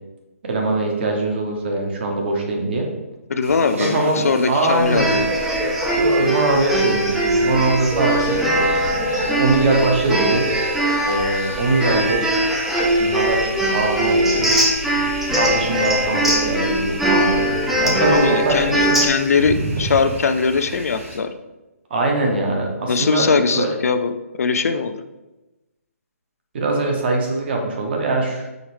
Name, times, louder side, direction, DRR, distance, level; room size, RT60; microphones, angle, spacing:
voice 1, 0.4-2.9 3.7-5.1 5.9-8.4 9.3-10.5 11.1-12.2 13.0-14.5 15.3-19.0 21.9-23.7 26.5-28.5, right 2 dB, 45° right, 1 dB, 1.0 m, -22 dB
voice 2, 3.3-5.3 18.1-21.3 22.9-24.1 24.4-25.0, left 5 dB, 75° left, 9 dB, 0.4 m, -20 dB
sound 1, 3.4-21.2, right 2 dB, 60° right, 1.4 m, -35 dB
sound 2, 4.9-19.1, right 1 dB, ahead, 0.4 m, -20 dB
5.0 x 3.1 x 3.1 m, 1.0 s
hypercardioid pair, 160°, 8 cm